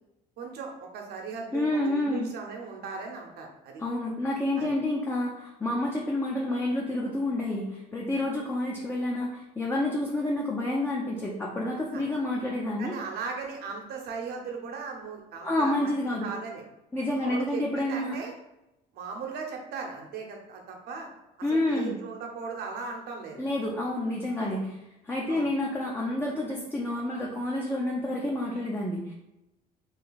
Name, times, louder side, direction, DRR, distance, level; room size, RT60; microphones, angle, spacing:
voice 1, 0.4-3.8 4.6-4.7 11.9-12.0 12.8-16.6 17.1-18.3 18.9-21.1 21.5-23.4 24.4-24.6 25.3-25.5, right 5 dB, 75° right, 1 dB, 0.9 m, -38 dB
voice 2, 1.5-2.3 3.8-12.9 15.4-16.3 16.9-18.2 21.4-22.0 23.4-24.8 25.0-29.1, left 1 dB, 15° left, -3 dB, 0.6 m, -29 dB
3.3 x 2.8 x 4.0 m, 0.92 s
cardioid pair, 110°, 17 cm